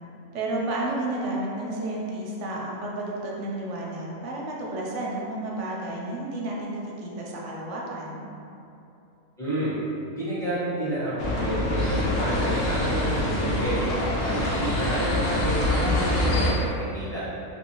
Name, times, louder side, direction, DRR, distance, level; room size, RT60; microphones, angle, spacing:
voice 1, 0.3-8.2, right 2 dB, 70° right, -3 dB, 0.8 m, -31 dB
voice 2, 9.4-9.7 10.1-13.8 14.1-17.3, right 1 dB, 5° left, -12 dB, 0.9 m, -30 dB
sound 1, 11.2-16.5, left 1 dB, 75° left, 1.0 m, -25 dB
2.9 x 2.6 x 2.8 m, 2.8 s
omnidirectional pair, 1.4 m